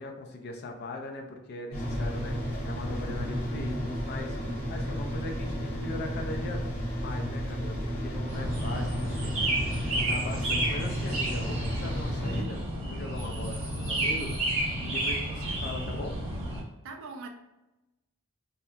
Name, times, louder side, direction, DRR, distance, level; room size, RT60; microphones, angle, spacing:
voice 1, 0.0-4.4 4.7-6.7 7.0-12.6 12.9-16.2, left 2 dB, 50° left, 3 dB, 0.4 m, -40 dB
sound 1, 1.7-12.4, equal, 30° left, 0.8 m, -33 dB
sound 2, 8.3-16.6, right 1 dB, 30° right, 0.9 m, -31 dB
voice 2, 12.2-12.6 13.6-13.9 16.8-17.3, right 2 dB, 60° right, 4 dB, 0.4 m, -42 dB
2.7 x 2.2 x 2.3 m, 1.0 s
head